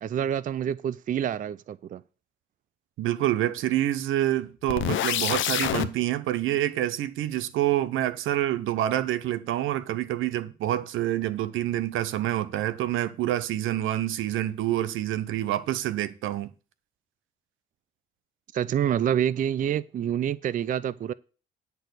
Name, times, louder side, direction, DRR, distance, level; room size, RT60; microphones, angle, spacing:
voice 1, 0.0-2.0 18.5-21.1, right 9 dB, 40° right, 0.4 m, -27 dB
voice 2, 3.0-16.5, right 13 dB, 85° right, 0.7 m, -27 dB
sound 1, 4.7-5.9, left 12 dB, 75° left, 0.7 m, -26 dB
10.0 x 4.5 x 7.9 m
cardioid pair, 90°, 20 cm